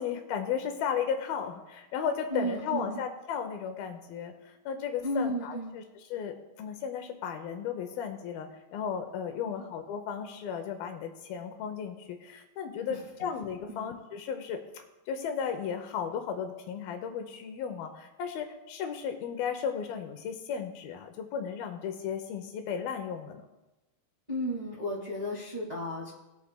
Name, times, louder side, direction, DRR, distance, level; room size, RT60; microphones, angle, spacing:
voice 1, 0.0-23.4, left 7 dB, 75° left, 6 dB, 2.4 m, -35 dB
voice 2, 2.3-3.0 5.0-5.7 9.5-9.6 13.7-13.9 24.3-26.1, equal, 40° right, -5 dB, 0.5 m, -33 dB
20.5 x 8.2 x 2.2 m, 1.0 s
omnidirectional pair, 4.6 m